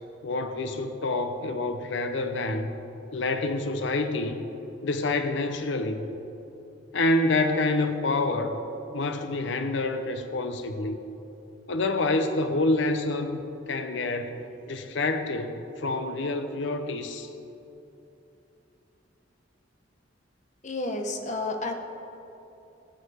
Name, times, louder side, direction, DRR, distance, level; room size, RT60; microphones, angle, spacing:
voice 1, 0.2-2.8 3.1-4.5 4.8-6.1 6.9-8.6 8.9-11.0 11.7-13.4 13.7-14.4 14.7-17.3, left 2 dB, 65° left, 7 dB, 0.7 m, -27 dB
voice 2, 20.6-21.7, left 2 dB, 40° left, 4 dB, 1.1 m, -30 dB
18.0 x 6.5 x 5.0 m, 2.9 s
head